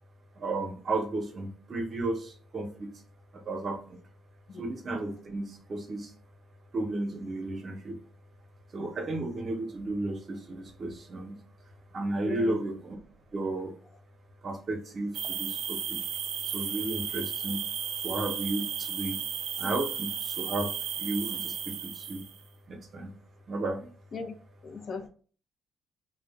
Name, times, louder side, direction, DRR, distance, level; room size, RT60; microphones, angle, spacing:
voice 1, 0.4-2.9 3.3-4.0 4.6-6.1 6.7-8.0 8.7-11.4 11.9-13.0 13.3-13.7 14.4-16.0 16.5-17.7 18.0-19.2 19.6-20.7 21.0-22.2 22.7-23.2 23.5-23.9, right 2 dB, 45° right, 0.7 m, -33 dB
voice 2, 12.3-12.6 24.1-24.3 24.6-25.1, left 5 dB, 55° left, 0.5 m, -37 dB
sound 1, 15.1-22.4, right 8 dB, 85° right, 0.4 m, -34 dB
2.5 x 2.0 x 3.4 m
cardioid pair, 90°, 0 cm